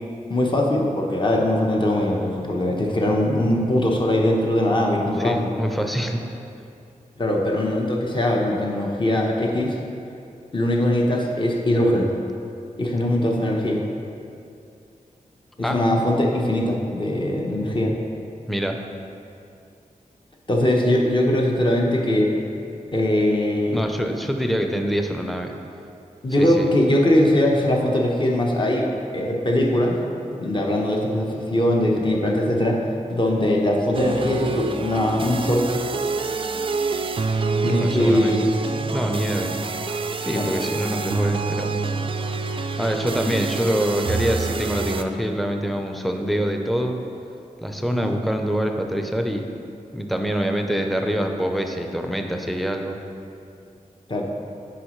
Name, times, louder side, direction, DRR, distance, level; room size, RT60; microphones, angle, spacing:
voice 1, 0.3-5.5 7.2-9.8 10.5-12.1 12.8-13.8 15.6-17.9 20.5-22.3 22.9-23.8 26.2-28.9 29.1-30.0 30.4-32.8 33.1-35.7 37.6-38.5 40.3-40.5 48.0-48.2 54.1-54.2, left 1 dB, 35° left, -1 dB, 1.0 m, -21 dB
voice 2, 5.2-6.2 15.6-15.8 18.5-18.8 23.7-25.5 26.4-26.7 30.3-30.5 36.4-36.7 37.7-38.4 38.9-39.6 40.2-41.7 42.8-47.0 47.6-49.4 49.9-53.0, equal, ahead, 4 dB, 0.6 m, -25 dB
sound 1, 33.9-45.0, right 4 dB, 40° right, 0.4 m, -26 dB
10.0 x 5.1 x 3.1 m, 2.5 s
wide cardioid pair, 70°, 14 cm